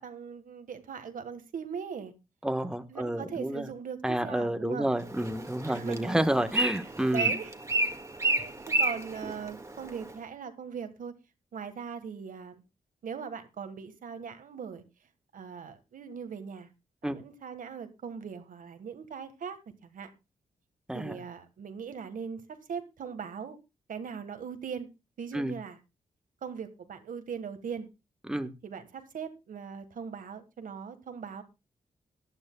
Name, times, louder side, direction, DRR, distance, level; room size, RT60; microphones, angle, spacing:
voice 1, 0.0-2.1 2.9-4.9 5.7-6.5 7.1-7.5 8.2-11.1 11.5-12.6 13.0-14.8 15.3-16.7 17.0-19.6 19.8-20.1 20.9-22.4 22.7-23.6 23.9-24.9 25.2-25.8 26.4-27.9 28.6-31.4, right 6 dB, 75° right, 9 dB, 1.5 m, -40 dB
voice 2, 2.4-3.7 4.0-7.3 17.0-17.2 20.9-21.2 25.3-25.6 28.3-28.5, right 1 dB, 5° right, 8 dB, 1.2 m, -30 dB
Bird, 5.0-10.1, right 2 dB, 20° right, 1.8 m, -31 dB
18.0 x 11.5 x 2.3 m, 0.26 s
cardioid pair, 70°, 14 cm